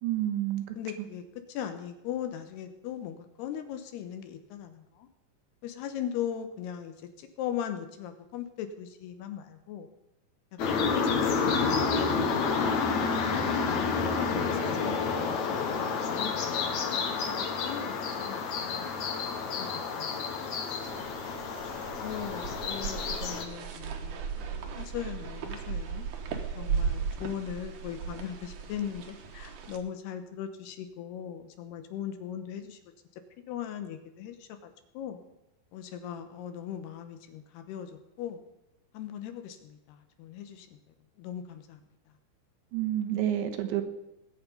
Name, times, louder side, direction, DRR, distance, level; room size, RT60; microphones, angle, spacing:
voice 1, 0.0-1.1 42.7-43.8, right 12 dB, 90° right, 6 dB, 3.6 m, -30 dB
voice 2, 0.8-1.2 1.5-5.1 5.6-6.9 7.4-9.9 10.7-13.1 14.3-16.9 17.4-17.9 18.2-18.9 19.6-20.2 22.0-24.2 24.8-26.1 26.6-32.8 33.5-35.2 35.7-37.9 38.2-38.4 38.9-39.8 40.2-40.7 41.2-41.8, left 9 dB, 75° left, 8 dB, 2.9 m, -39 dB
sound 1, 10.6-23.4, left 5 dB, 60° left, 2.1 m, -29 dB
sound 2, 20.8-29.8, right 6 dB, 60° right, 2.2 m, -36 dB
20.5 x 8.7 x 5.4 m, 0.93 s
omnidirectional pair, 5.2 m